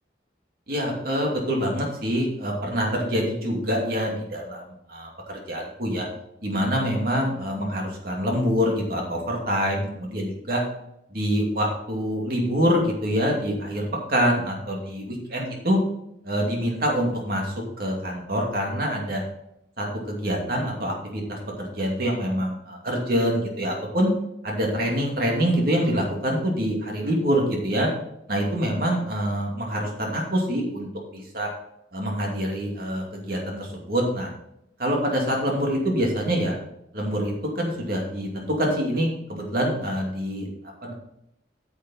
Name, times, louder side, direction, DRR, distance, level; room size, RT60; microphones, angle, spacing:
voice 1, 0.7-6.1 6.4-10.6 11.1-15.8 16.2-19.2 19.8-24.1 24.4-27.9 28.3-31.5 31.9-34.3 34.8-36.5 36.9-40.5 40.8-40.9, equal, 55° right, -1 dB, 2.6 m, -25 dB
9.2 x 7.9 x 4.3 m, 0.79 s
head